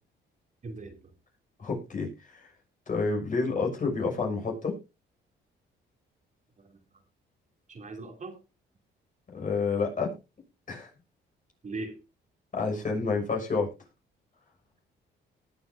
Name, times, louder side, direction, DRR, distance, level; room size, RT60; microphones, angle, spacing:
voice 1, 0.6-1.1 6.6-6.8 7.7-8.4 11.6-12.0, right 3 dB, 40° right, 3 dB, 3.1 m, -39 dB
voice 2, 1.6-2.5 2.9-4.8 9.3-10.1 10.7-10.9 12.5-13.7, left 4 dB, 40° left, 1 dB, 6.3 m, -29 dB
19.5 x 7.6 x 2.8 m, 0.27 s
cardioid pair, 90°, 20 cm